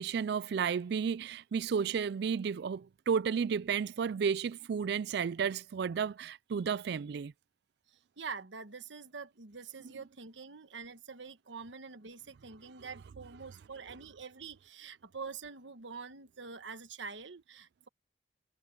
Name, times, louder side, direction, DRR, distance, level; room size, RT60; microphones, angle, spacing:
voice 1, 0.0-7.3, right 6 dB, 60° right, 0.3 m, -32 dB
voice 2, 7.9-17.9, right 5 dB, 85° right, 1.3 m, -46 dB
head